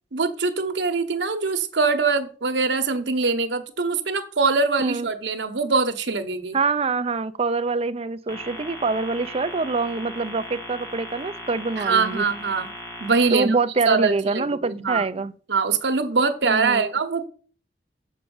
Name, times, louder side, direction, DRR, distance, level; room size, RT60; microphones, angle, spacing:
voice 1, 0.1-6.6 11.8-12.7 13.0-13.6 13.9-15.0 15.5-17.2, right 4 dB, 75° right, 1.1 m, -23 dB
voice 2, 6.5-12.2 13.3-15.3 16.4-16.9, right 4 dB, 35° right, 0.5 m, -25 dB
sound 1, 8.3-13.3, equal, 15° left, 2.3 m, -38 dB
7.3 x 4.8 x 7.0 m
head